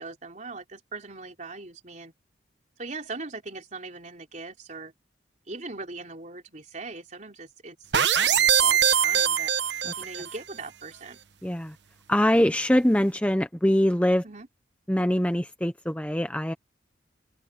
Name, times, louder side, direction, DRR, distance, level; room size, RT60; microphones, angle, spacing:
voice 1, 0.0-2.1 2.8-4.9 5.5-7.9 8.2-9.5 10.0-11.2 14.2-14.5, right 3 dB, 40° right, 4.1 m, -40 dB
sound 1, 7.9-10.4, right 8 dB, 70° right, 1.1 m, -22 dB
voice 2, 11.4-11.7 12.1-14.2 14.9-16.5, equal, 5° left, 0.9 m, -23 dB
open air
head